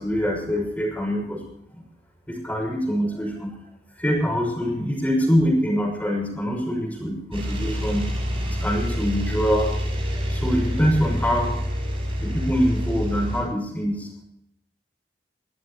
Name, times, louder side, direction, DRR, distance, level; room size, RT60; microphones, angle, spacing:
voice 1, 0.0-1.4 2.3-3.6 4.0-8.1 8.5-9.7 10.3-11.5 12.2-14.2, equal, 10° left, 1 dB, 6.0 m, -24 dB
sound 1, 7.3-13.4, equal, 35° right, 6.2 m, -27 dB
23.5 x 14.0 x 2.9 m, 0.75 s
head